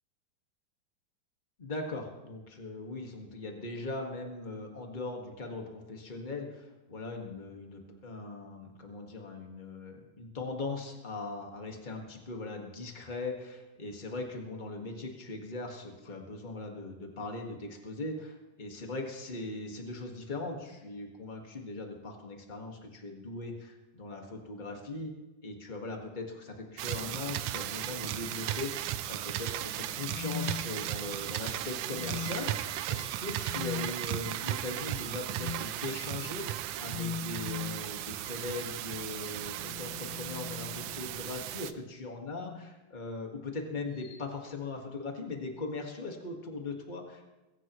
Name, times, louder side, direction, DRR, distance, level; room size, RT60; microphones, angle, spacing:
voice 1, 1.6-25.1 25.4-47.2, left 3 dB, 55° left, 1 dB, 0.5 m, -40 dB
sound 1, 26.8-41.7, right 13 dB, 85° right, 1.7 m, -36 dB
sound 2, 29.9-31.2 31.8-32.6 33.4-33.9 35.3-35.7 36.8-37.9 39.4-41.2 42.3-42.7 44.0-44.2, left 7 dB, 80° left, 2.8 m, -41 dB
22.0 x 16.0 x 3.1 m, 1.1 s
omnidirectional pair, 4.0 m